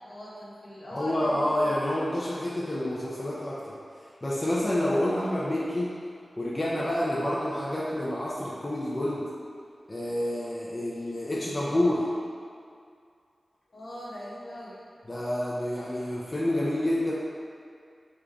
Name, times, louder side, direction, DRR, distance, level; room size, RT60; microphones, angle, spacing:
voice 1, 0.0-1.7 13.7-14.8, equal, 60° left, -8 dB, 1.1 m, -40 dB
voice 2, 0.9-3.7 4.2-6.0 6.4-9.2 9.9-12.1 15.1-17.1, left 1 dB, 25° left, -7 dB, 0.6 m, -28 dB
3.8 x 3.5 x 3.4 m, 2.3 s
wide cardioid pair, 80°, 0 cm